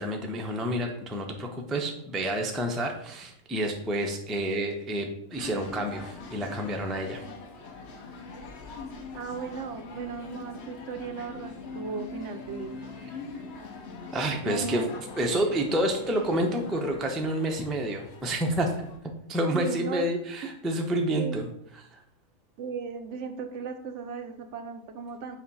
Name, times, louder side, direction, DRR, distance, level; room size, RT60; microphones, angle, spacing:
voice 1, 0.0-7.3 14.1-14.9 15.2-18.8 19.3-21.5 21.9-22.0, right 1 dB, ahead, 2 dB, 0.3 m, -29 dB
sound 1, 5.3-19.0, left 4 dB, 55° left, 1.0 m, -43 dB
voice 2, 9.1-12.8 14.4-14.9 19.5-20.1 20.4-20.5 21.1-21.4 22.6-25.4, right 5 dB, 65° right, 7 dB, 0.8 m, -36 dB
7.2 x 2.4 x 5.4 m, 0.72 s
omnidirectional pair, 1.5 m